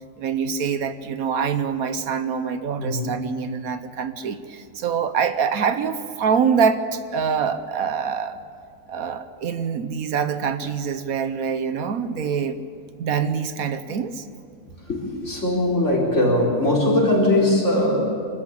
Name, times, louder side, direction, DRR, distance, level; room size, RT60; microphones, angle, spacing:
voice 1, 0.2-8.4 8.9-12.6 13.0-14.2, right 6 dB, 70° right, 11 dB, 1.3 m, -25 dB
voice 2, 2.8-3.3 14.9-18.0, left 1 dB, 50° left, -1 dB, 4.7 m, -20 dB
25.0 x 14.5 x 8.5 m, 2.3 s
omnidirectional pair, 1.6 m